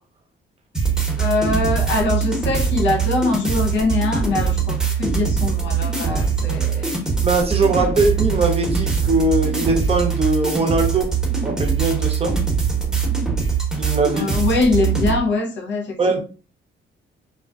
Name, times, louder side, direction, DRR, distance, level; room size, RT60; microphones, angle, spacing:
sound 1, 0.7-15.2, right 5 dB, 5° right, 0.9 m, -22 dB
voice 1, 1.2-7.0 14.1-16.2, left 3 dB, 65° left, 0.7 m, -23 dB
voice 2, 7.2-11.1 11.4-12.4 13.8-14.3 16.0-16.2, right 3 dB, 30° right, 0.6 m, -20 dB
2.3 x 2.3 x 2.2 m
cardioid pair, 90°, 20 cm